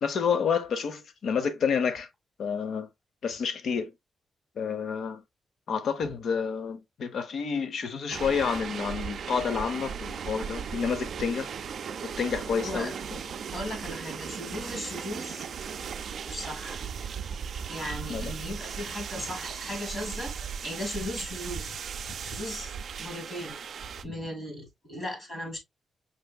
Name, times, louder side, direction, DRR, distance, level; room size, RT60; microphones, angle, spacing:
voice 1, 0.0-2.1 2.4-2.9 3.2-3.9 4.6-5.2 5.7-11.5 12.0-12.9 18.1-18.3, left 6 dB, 75° left, 0.6 m, -29 dB
sound 1, 8.1-24.0, right 7 dB, 65° right, 0.4 m, -37 dB
voice 2, 12.6-12.9 13.5-15.4 16.2-16.8 17.7-20.3 20.6-22.7 23.0-25.6, left 1 dB, 35° left, 1.8 m, -37 dB
5.1 x 3.3 x 2.2 m
wide cardioid pair, 145°, 0 cm